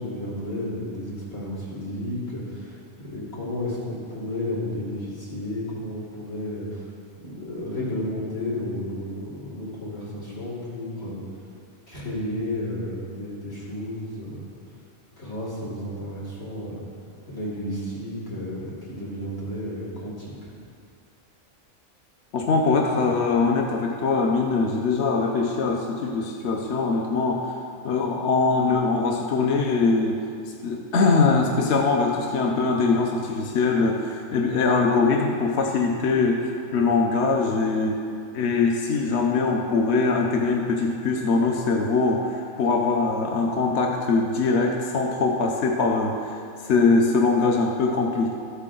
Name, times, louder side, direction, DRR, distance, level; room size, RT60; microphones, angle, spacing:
voice 1, 0.0-6.9 7.2-11.2 11.9-14.4 15.2-16.8 17.3-20.5, left 1 dB, 80° left, -8 dB, 3.6 m, -32 dB
voice 2, 22.3-27.5 27.8-30.2 30.6-38.0 38.3-48.3, left 4 dB, 60° left, 1 dB, 1.0 m, -22 dB
14.0 x 8.3 x 3.8 m, 2.4 s
omnidirectional pair, 1.4 m